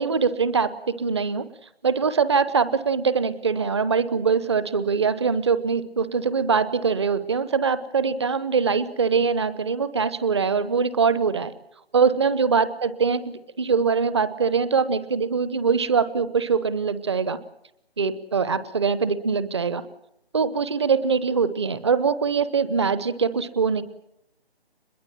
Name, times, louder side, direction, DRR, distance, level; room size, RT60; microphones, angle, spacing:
voice 1, 0.0-1.4 1.8-11.5 11.9-17.4 18.0-19.8 20.3-23.8, right 5 dB, 25° right, 15 dB, 0.9 m, -23 dB
25.0 x 21.5 x 7.5 m, 0.79 s
figure-of-eight pair, 155°, 32 cm